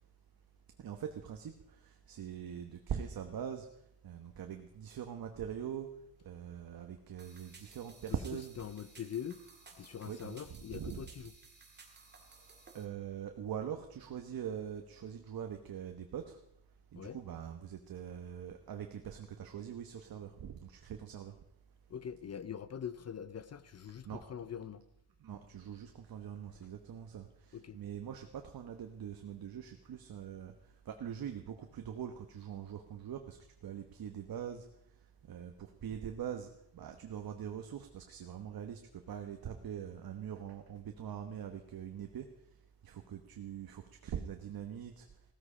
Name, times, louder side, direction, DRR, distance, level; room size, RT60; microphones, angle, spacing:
voice 1, 0.8-3.7 4.0-5.9 6.2-8.6 10.0-11.1 12.7-16.4 16.9-21.3 24.0-24.2 25.2-30.5 30.8-33.4 33.6-34.7 35.2-42.3 42.8-45.1, right 8 dB, 60° right, 1.1 m, -43 dB
sound 1, 7.2-12.8, right 3 dB, 25° right, 2.2 m, -58 dB
voice 2, 8.6-9.4 9.8-11.3 16.9-17.2 21.9-24.8 27.5-27.8, left 8 dB, 40° left, 0.6 m, -43 dB
16.5 x 13.5 x 5.0 m
wide cardioid pair, 170°, 41 cm